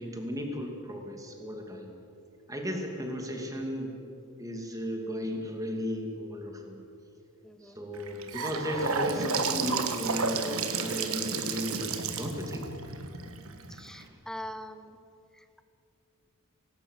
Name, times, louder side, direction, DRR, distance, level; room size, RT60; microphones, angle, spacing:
voice 1, 0.0-1.9 2.5-3.9 4.4-6.8 7.6-12.7 14.0-14.2, equal, 15° right, 2 dB, 2.4 m, -35 dB
voice 2, 7.4-7.8 13.7-15.0 15.3-15.6, equal, ahead, 10 dB, 0.9 m, -43 dB
Gurgling / Sink (filling or washing) / Bathtub (filling or washing), 7.9-14.0, right 4 dB, 70° right, 1.5 m, -32 dB
18.5 x 18.0 x 8.1 m, 2.7 s
head